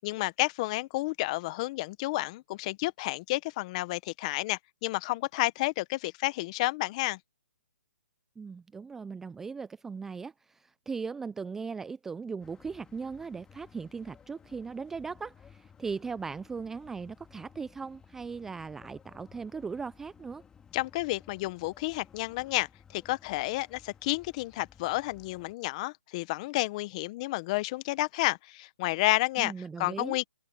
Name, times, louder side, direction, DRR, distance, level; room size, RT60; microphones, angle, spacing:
voice 1, 0.0-7.2 20.7-30.2, left 20 dB, 30° left, 0.9 m, -31 dB
voice 2, 8.4-20.4 29.4-30.2, right 5 dB, 5° right, 0.3 m, -38 dB
sound 1, 12.4-25.5, left 7 dB, 10° left, 2.0 m, -57 dB
open air
hypercardioid pair, 155°, 7 cm